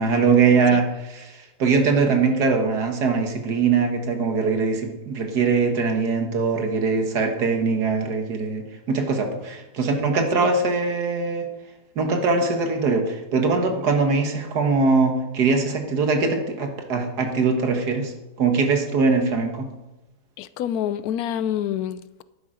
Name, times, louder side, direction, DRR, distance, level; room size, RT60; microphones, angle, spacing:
voice 1, 0.0-1.3 1.6-11.5 12.0-18.1 18.4-19.7, right 4 dB, 80° right, 5 dB, 2.0 m, -22 dB
voice 2, 20.4-22.2, left 10 dB, 75° left, 16 dB, 1.1 m, -27 dB
11.5 x 9.5 x 5.0 m, 0.97 s
omnidirectional pair, 1.7 m